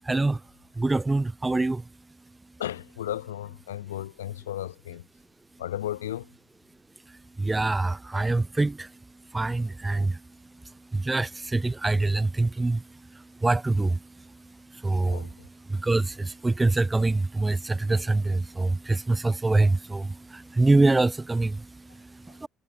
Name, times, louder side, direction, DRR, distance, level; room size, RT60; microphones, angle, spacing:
voice 1, 0.0-0.4 0.8-1.8 7.4-8.9 9.3-10.2 10.9-12.8 13.4-14.0 14.7-15.3 15.7-22.5, right 2 dB, 20° right, 1.7 m, -25 dB
voice 2, 2.6-5.0 5.6-6.3 15.1-15.5 22.3-22.4, left 12 dB, 90° left, 1.5 m, -34 dB
hypercardioid pair, 50°, 0 cm